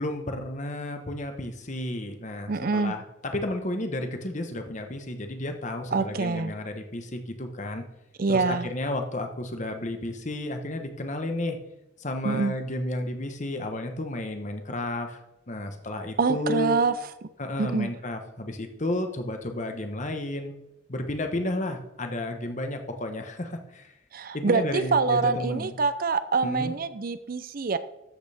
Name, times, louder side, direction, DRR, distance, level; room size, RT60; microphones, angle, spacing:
voice 1, 0.0-7.8 8.3-11.6 12.0-15.2 15.5-16.8 17.4-20.5 20.9-23.9 24.3-25.8 26.4-26.7, left 1 dB, 40° left, 5 dB, 1.1 m, -32 dB
voice 2, 2.5-3.0 5.9-6.5 8.2-8.7 12.2-12.5 16.2-17.3 17.6-17.9 24.1-27.8, right 4 dB, 45° right, 13 dB, 0.5 m, -25 dB
13.0 x 8.1 x 3.5 m, 0.91 s
head